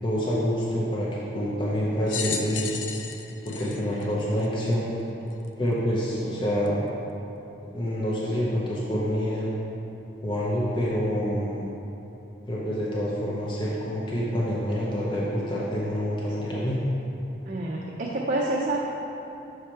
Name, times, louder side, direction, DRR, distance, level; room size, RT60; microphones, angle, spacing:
voice 1, 0.0-2.8 3.4-4.9 5.6-6.8 7.6-9.6 10.2-11.6 12.5-16.8, equal, 25° left, -6 dB, 0.7 m, -27 dB
sound 1, 2.1-4.7 5.4-5.5 6.7-6.8, left 7 dB, 80° left, 0.4 m, -34 dB
voice 2, 17.5-18.8, right 2 dB, 45° right, -3 dB, 0.5 m, -28 dB
6.3 x 4.9 x 4.4 m, 3.0 s
head